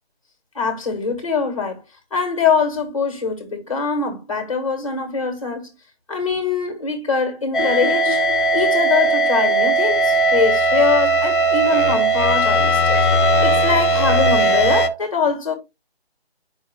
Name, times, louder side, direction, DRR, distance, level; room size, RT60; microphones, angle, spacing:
voice 1, 0.6-1.8 2.1-5.7 6.1-8.2 8.5-13.0 13.4-15.6, left 5 dB, 30° left, 1.7 m, -23 dB
sound 1, 7.5-14.9, right 1 dB, 55° left, 1.0 m, -17 dB
7.9 x 5.6 x 2.3 m
hypercardioid pair, 175°, 32 cm